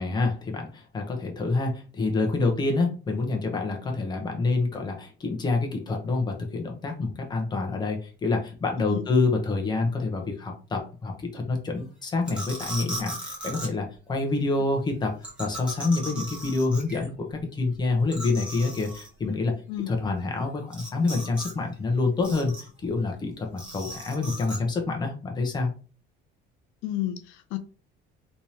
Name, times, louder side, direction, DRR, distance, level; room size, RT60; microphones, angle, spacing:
voice 1, 0.0-19.5 19.9-22.5 22.8-25.7, left 3 dB, 20° left, 0.9 m, -27 dB
sound 1, 12.3-13.7 15.2-17.1 17.4-17.5 17.7-17.8 18.1-19.1 20.7-21.5 21.8-22.8 23.6-24.6, right 1 dB, 5° right, 1.2 m, -37 dB
voice 2, 26.8-27.6, left 13 dB, 75° left, 0.5 m, -31 dB
3.5 x 3.1 x 2.8 m
cardioid pair, 155°, 20 cm